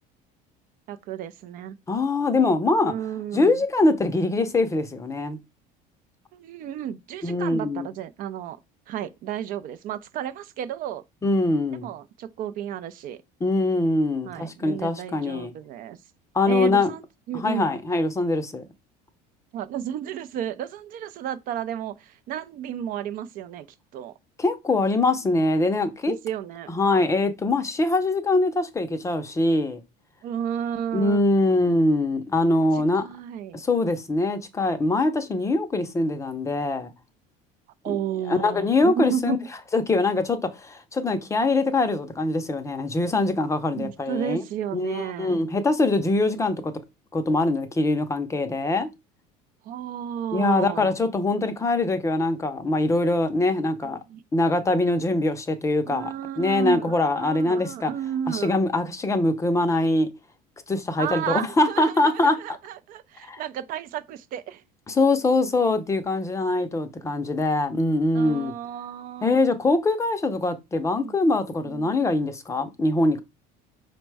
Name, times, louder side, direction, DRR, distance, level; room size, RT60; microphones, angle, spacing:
voice 1, 0.9-1.8 2.8-3.6 6.3-8.6 8.9-11.0 11.8-13.2 14.2-16.0 16.5-17.0 17.3-17.7 19.5-23.7 23.9-24.1 26.1-26.7 30.2-31.2 32.7-33.6 37.8-39.4 43.7-45.4 49.6-51.0 53.8-54.2 55.9-58.6 61.0-64.6 68.1-69.4 71.0-71.1 71.7-71.9, right 10 dB, 50° right, 0.4 m, -32 dB
voice 2, 1.9-2.9 3.3-5.4 7.2-7.9 11.2-11.9 13.4-15.5 16.3-16.9 17.3-18.7 24.4-26.2 26.7-29.8 30.9-33.0 33.5-36.9 37.9-38.0 38.3-39.4 39.7-44.4 44.7-46.7 47.1-48.9 50.3-54.0 54.3-57.9 58.3-60.1 60.7-62.4 63.2-63.4 64.9-68.5 69.2-73.2, left 2 dB, 15° left, 0.5 m, -23 dB
5.1 x 2.2 x 4.6 m
cardioid pair, 135°, 19 cm